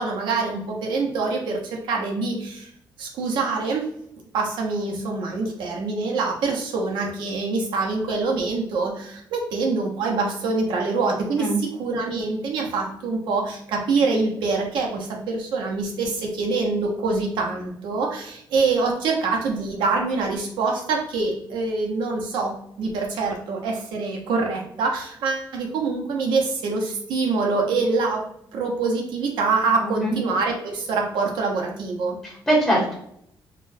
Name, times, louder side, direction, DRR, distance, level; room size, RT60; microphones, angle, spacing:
voice 1, 0.0-2.7 3.0-3.9 4.3-11.5 11.8-28.2 28.5-32.2, right 3 dB, 75° right, 0 dB, 0.9 m, -25 dB
voice 2, 29.8-30.1 32.2-32.9, right 1 dB, 10° left, -6 dB, 1.0 m, -22 dB
4.1 x 2.3 x 2.6 m, 0.71 s
cardioid pair, 165°, 8 cm